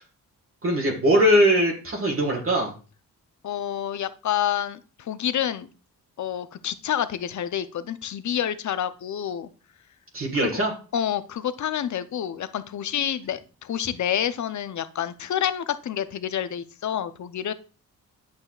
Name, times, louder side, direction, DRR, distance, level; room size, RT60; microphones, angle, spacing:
voice 1, 0.6-2.7 10.1-10.7, equal, 40° right, -1 dB, 1.6 m, -21 dB
voice 2, 3.4-5.7 6.2-9.5 10.3-10.6 10.9-17.5, left 10 dB, 55° left, 13 dB, 0.6 m, -28 dB
8.9 x 5.5 x 2.4 m, 0.35 s
cardioid pair, 65°, 35 cm